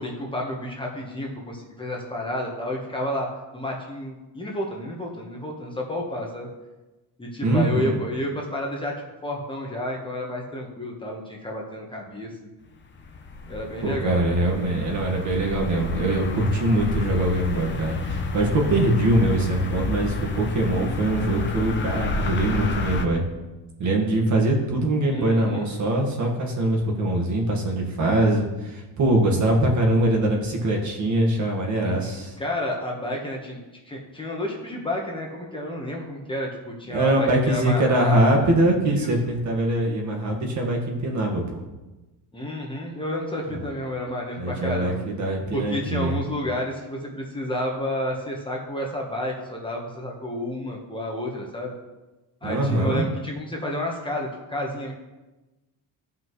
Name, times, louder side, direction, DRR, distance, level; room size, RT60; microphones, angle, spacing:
voice 1, 0.0-6.5 7.2-8.9 9.2-12.3 13.5-14.2 25.1-25.7 31.8-31.9 32.4-33.6 33.9-38.5 38.9-39.1 42.3-45.0 45.5-51.7 52.4-54.9, left 1 dB, 15° left, -1 dB, 1.2 m, -30 dB
voice 2, 7.4-8.0 13.8-23.2 23.8-32.3 36.9-41.6 43.5-43.6 44.4-46.1 52.4-53.0, right 1 dB, 45° right, 1 dB, 1.7 m, -23 dB
sound 1, 12.7-23.1, left 4 dB, 30° left, 0.8 m, -30 dB
14.0 x 5.6 x 3.2 m, 1.1 s
cardioid pair, 140°, 40 cm